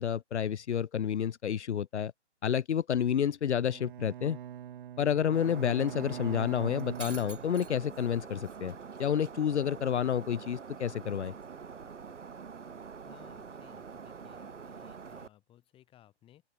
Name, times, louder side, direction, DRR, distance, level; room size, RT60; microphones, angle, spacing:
voice 1, 0.0-2.1 2.4-4.4 5.0-8.7 9.0-11.3, left 8 dB, 70° left, 1.1 m, -29 dB
Bowed string instrument, 3.5-7.9, right 11 dB, 45° right, 4.3 m, -43 dB
Shatter, 5.3-15.3, right 6 dB, 85° right, 4.9 m, -45 dB
sound 1, 6.5-12.9, right 17 dB, 15° right, 3.4 m, -60 dB
voice 2, 13.0-16.4, left 12 dB, 15° left, 6.9 m, -60 dB
open air
hypercardioid pair, 160°, 35 cm